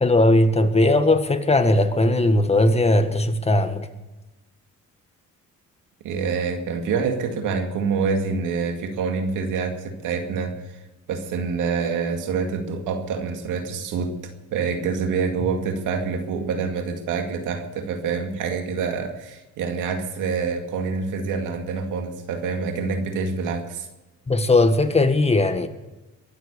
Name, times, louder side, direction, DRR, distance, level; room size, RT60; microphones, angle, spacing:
voice 1, 0.0-3.9 24.3-25.7, left 2 dB, 20° left, 1.5 m, -18 dB
voice 2, 6.0-10.8 11.1-23.9, right 5 dB, 90° right, 2.2 m, -26 dB
22.5 x 8.0 x 6.9 m
cardioid pair, 90°, 30 cm